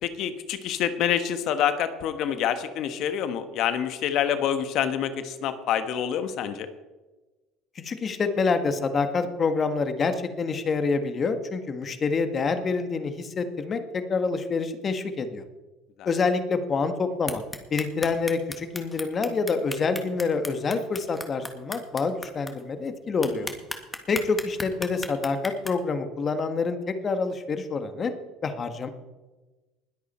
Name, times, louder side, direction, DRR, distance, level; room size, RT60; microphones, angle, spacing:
voice 1, 0.0-6.7 16.0-16.1 23.2-23.4, left 9 dB, 60° left, 10 dB, 1.3 m, -27 dB
voice 2, 7.7-15.4 16.0-17.4 17.7-23.5 24.1-28.1 28.4-28.9, left 4 dB, 35° left, 8 dB, 1.7 m, -27 dB
sound 1, 17.3-22.5 22.9-23.0 23.2-25.7, left 2 dB, 15° left, 1.9 m, -34 dB
20.5 x 8.4 x 4.4 m, 1.2 s
supercardioid pair, 90°, 0 cm